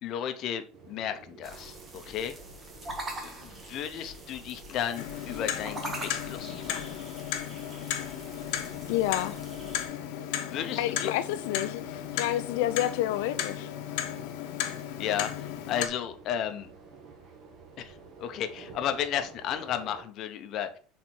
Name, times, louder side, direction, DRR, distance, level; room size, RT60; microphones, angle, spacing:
voice 1, 0.0-2.4 3.2-6.9 10.5-11.1 15.0-16.7 17.8-20.8, left 9 dB, 40° left, 0.8 m, -34 dB
sound 1, 0.7-20.0, right 4 dB, 40° right, 1.3 m, -51 dB
sound 2, 1.4-9.9, right 1 dB, 20° right, 1.4 m, -43 dB
Clock, 5.0-15.9, left 11 dB, 70° left, 0.9 m, -35 dB
voice 2, 8.9-9.4 10.7-13.7, left 13 dB, 85° left, 0.3 m, -29 dB
6.2 x 4.1 x 4.3 m
cardioid pair, 160°, 0 cm